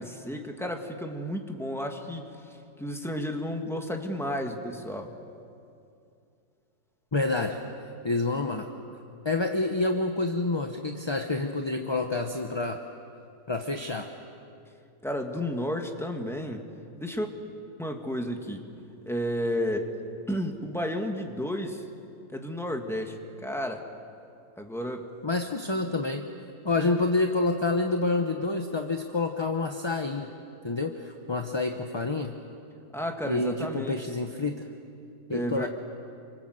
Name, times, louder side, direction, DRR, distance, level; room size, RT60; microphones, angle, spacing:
voice 1, 0.0-5.1 15.0-16.6 17.0-17.3 17.8-18.7 19.1-19.9 20.3-21.8 22.3-23.8 24.6-25.1 32.9-34.0 35.3-35.7, equal, ahead, 3 dB, 1.9 m, -32 dB
voice 2, 7.1-7.6 8.0-8.7 9.2-12.8 13.5-14.1 25.2-26.3 26.6-30.3 30.6-32.3 33.3-34.7 35.3-35.7, left 3 dB, 20° left, 5 dB, 0.9 m, -28 dB
28.5 x 25.5 x 7.9 m, 2.5 s
omnidirectional pair, 1.8 m